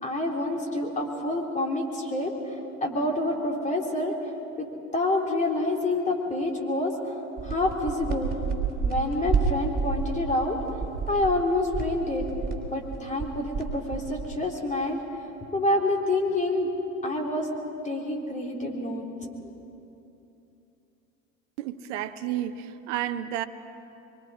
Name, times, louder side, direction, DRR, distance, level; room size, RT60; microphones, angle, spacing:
voice 1, 0.0-4.1 4.6-4.7 4.9-6.9 7.4-8.3 8.8-10.6 11.1-12.2 12.7-15.0 15.5-17.5 17.8-19.5, left 2 dB, 15° left, 0 dB, 3.6 m, -27 dB
sound 1, 7.4-14.5, right 5 dB, 20° right, 3.5 m, -30 dB
voice 2, 21.6-23.5, right 12 dB, 60° right, 11 dB, 1.1 m, -31 dB
24.5 x 24.0 x 4.9 m, 2.9 s
hypercardioid pair, 85°, 41 cm